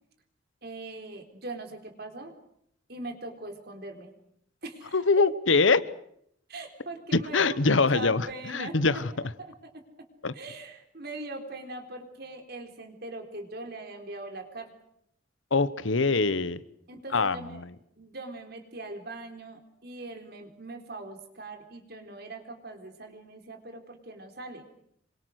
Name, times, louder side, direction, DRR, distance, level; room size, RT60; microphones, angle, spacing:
voice 1, 0.6-2.3 2.9-4.1 4.6-5.0 6.5-9.0 9.4-9.7 10.3-14.7 16.9-17.6 18.0-24.6, right 2 dB, 55° right, 5 dB, 4.0 m, -41 dB
voice 2, 4.9-5.8 7.1-9.1 10.2-10.3 15.5-16.6 17.1-17.7, left 3 dB, 85° left, 16 dB, 1.1 m, -24 dB
27.5 x 24.5 x 6.5 m, 0.73 s
head